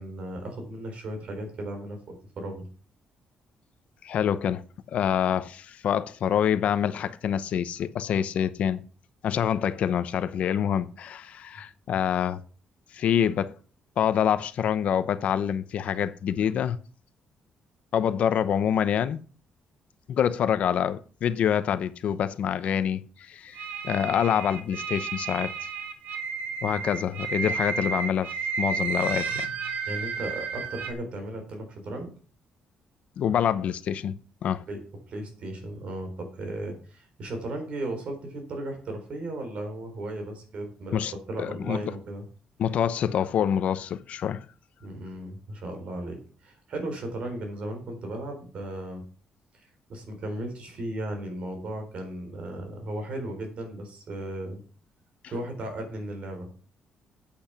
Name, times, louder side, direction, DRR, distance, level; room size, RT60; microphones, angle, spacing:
voice 1, 0.0-2.6 26.7-26.8 29.9-32.1 34.7-34.8 35.1-42.2 44.8-49.0 49.9-54.6 55.3-56.5, right 1 dB, 50° right, 4.1 m, -36 dB
voice 2, 4.0-4.6 4.9-8.8 9.2-12.4 12.9-13.5 14.0-16.8 17.9-19.2 20.1-25.5 26.6-29.5 33.2-34.6 40.9-41.1 41.4-41.8 42.6-44.4, left 9 dB, 55° left, 0.7 m, -26 dB
sound 1, 23.5-30.9, right 5 dB, 80° right, 1.9 m, -32 dB
8.7 x 8.6 x 5.8 m
cardioid pair, 160°, 3 cm